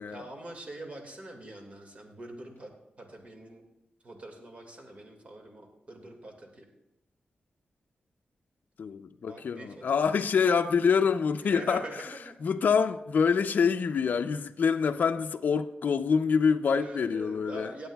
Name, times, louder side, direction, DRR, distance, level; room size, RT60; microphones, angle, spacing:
voice 1, 0.1-2.7 3.0-3.7 4.0-6.7 9.3-10.3 11.4-12.3 16.7-17.9, right 1 dB, 40° right, 1.9 m, -44 dB
voice 2, 8.8-11.8 12.4-17.7, left 6 dB, 65° left, 0.4 m, -26 dB
19.0 x 7.9 x 2.3 m
wide cardioid pair, 100°, 3 cm